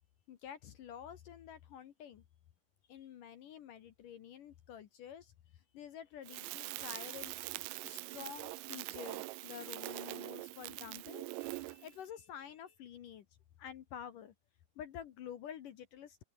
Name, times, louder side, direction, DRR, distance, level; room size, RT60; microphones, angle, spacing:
voice 1, 0.3-2.2 2.9-7.3 7.8-13.3 13.6-14.3 14.8-16.2, left 9 dB, 75° left, 2.0 m, -49 dB
Crackle, 6.3-12.0, right 23 dB, 90° right, 3.4 m, -43 dB
open air
omnidirectional pair, 5.9 m